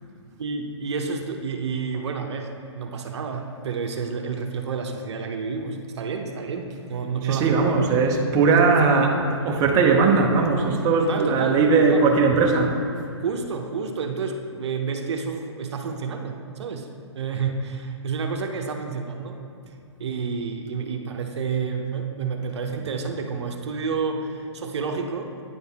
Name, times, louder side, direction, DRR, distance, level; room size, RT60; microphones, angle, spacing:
voice 1, 0.4-7.9 8.3-8.9 11.0-12.1 13.2-16.9 17.1-19.4 20.0-25.4, right 5 dB, 65° right, 4 dB, 0.7 m, -30 dB
voice 2, 7.2-9.1 9.4-12.8, right 4 dB, 25° right, 1 dB, 0.7 m, -19 dB
9.3 x 4.0 x 3.5 m, 2.6 s
hypercardioid pair, 140°, 15 cm